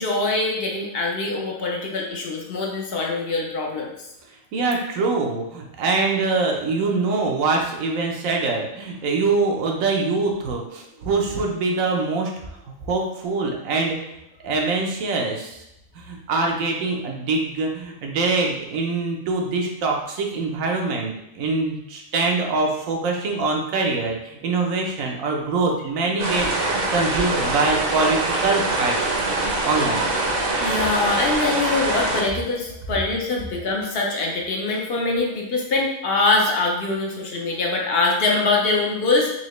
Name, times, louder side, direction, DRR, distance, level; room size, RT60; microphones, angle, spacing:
voice 1, 0.0-3.9 30.6-39.3, left 3 dB, 55° left, -1 dB, 0.8 m, -23 dB
voice 2, 4.5-12.3 12.8-14.0 14.4-15.6 16.0-29.1 29.6-30.1, right 3 dB, 80° right, 1 dB, 1.1 m, -24 dB
sound 1, 26.2-32.2, right 2 dB, 50° right, 0.8 m, -24 dB
4.2 x 2.8 x 3.0 m, 0.84 s
omnidirectional pair, 1.4 m